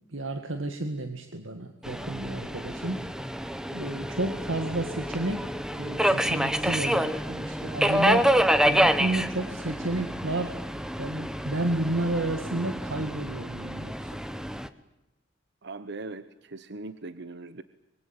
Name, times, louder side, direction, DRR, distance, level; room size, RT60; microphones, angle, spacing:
voice 1, 0.1-3.1 3.7-5.5 5.8-8.3 8.6-10.6 11.0-14.1, right 2 dB, 85° right, 6 dB, 2.0 m, -31 dB
Subway metro underground, 1.8-14.7, equal, 5° right, 1.1 m, -28 dB
voice 2, 15.6-17.6, right 3 dB, 60° right, 12 dB, 1.0 m, -40 dB
25.0 x 23.0 x 8.9 m, 0.94 s
head